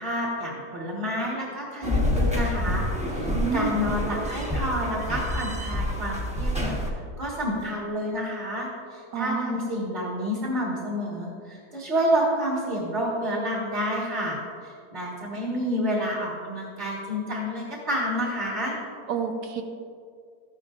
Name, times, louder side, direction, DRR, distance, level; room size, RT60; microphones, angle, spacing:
voice 1, 0.0-2.8 3.1-6.8 7.2-18.8, equal, 30° right, -4 dB, 1.7 m, -29 dB
sound 1, 1.8-6.9, left 1 dB, 5° right, 0.9 m, -27 dB
voice 2, 3.3-3.8 9.1-9.6 19.1-19.6, right 5 dB, 75° right, 5 dB, 1.4 m, -28 dB
14.0 x 11.0 x 2.5 m, 2.2 s
omnidirectional pair, 1.7 m